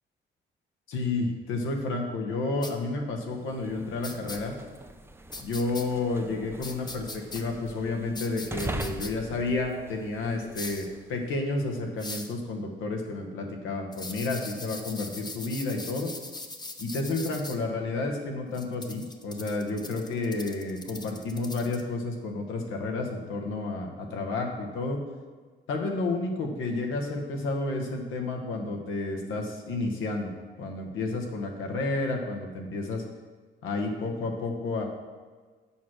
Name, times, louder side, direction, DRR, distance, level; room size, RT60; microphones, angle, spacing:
voice 1, 0.9-4.5 5.4-16.1 16.8-25.0 25.7-30.3 30.6-33.0 33.6-34.8, left 3 dB, 85° left, 2 dB, 1.3 m, -31 dB
sound 1, 2.6-2.7 4.0-4.4 5.3-5.8 6.6-7.4 8.2-9.1 10.5-10.9 12.0-12.3 13.9-17.6 18.5-21.8, left 2 dB, 20° left, 0.8 m, -40 dB
sound 2, 3.4-11.2, right 2 dB, 10° right, 0.5 m, -42 dB
7.1 x 4.9 x 6.1 m, 1.4 s
cardioid pair, 90°, 20 cm